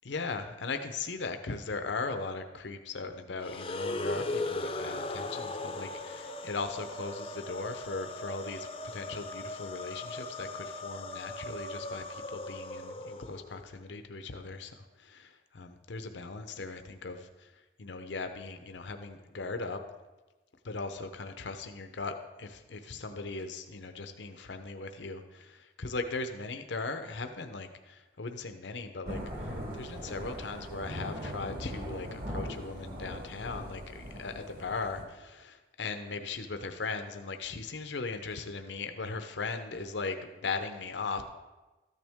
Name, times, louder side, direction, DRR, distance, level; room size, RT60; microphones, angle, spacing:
voice 1, 0.1-17.5 17.8-19.8 20.6-41.2, left 3 dB, 85° left, 7 dB, 0.7 m, -38 dB
sound 1, 3.4-13.6, left 2 dB, 30° left, 0.5 m, -38 dB
Thunder / Rain, 29.1-35.0, equal, 50° right, 1.9 m, -40 dB
13.5 x 9.2 x 3.5 m, 1.2 s
head